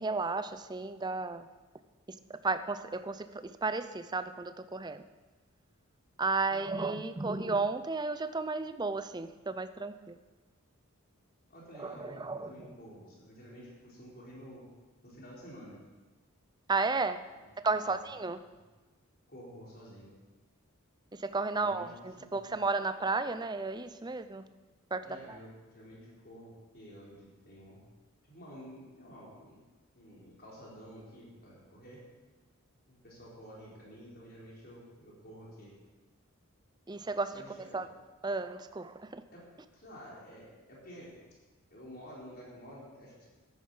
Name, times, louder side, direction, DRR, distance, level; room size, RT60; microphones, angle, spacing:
voice 1, 0.0-1.5 2.1-5.0 6.2-10.2 11.8-12.7 16.7-17.2 17.6-18.4 21.1-24.4 24.9-25.4 36.9-37.9 38.2-39.2, right 3 dB, 20° right, 11 dB, 0.5 m, -33 dB
voice 2, 11.5-14.6 15.0-15.8 17.3-17.5 17.8-18.0 18.5-18.6 19.3-20.1 21.5-21.9 22.2-22.5 25.0-27.8 28.3-29.6 29.9-32.0 32.9-35.7 37.3-37.8 39.3-39.4 39.7-41.1 41.7-43.3, equal, 45° left, -5 dB, 4.3 m, -50 dB
13.5 x 10.5 x 5.6 m, 1.3 s
head